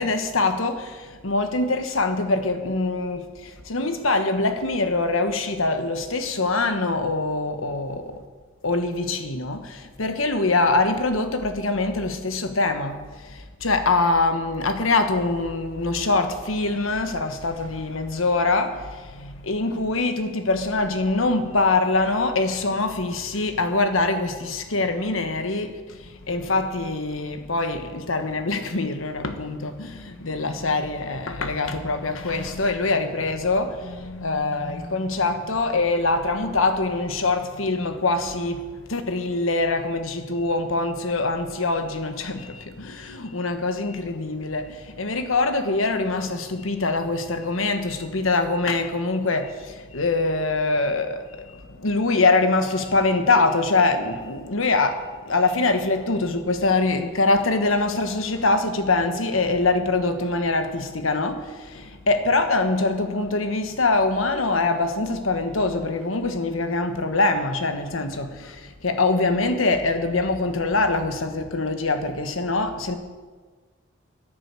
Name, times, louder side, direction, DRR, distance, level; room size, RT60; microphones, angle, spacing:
voice 1, 0.0-8.2 8.6-73.0, left 3 dB, 90° left, 1.4 m, -24 dB
11.0 x 10.0 x 8.2 m
head